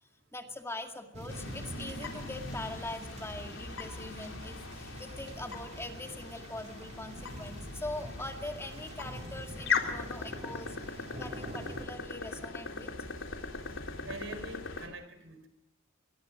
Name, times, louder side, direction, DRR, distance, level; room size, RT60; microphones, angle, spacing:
voice 1, 0.0-12.9, left 2 dB, 15° left, 5 dB, 2.1 m, -42 dB
sound 1, 1.1-11.9, right 1 dB, 35° right, 2.4 m, -46 dB
sound 2, 1.3-14.9, left 4 dB, 80° left, 3.6 m, -39 dB
voice 2, 14.1-15.5, right 2 dB, 80° right, 10 dB, 4.3 m, -44 dB
24.5 x 22.0 x 5.1 m, 0.79 s
head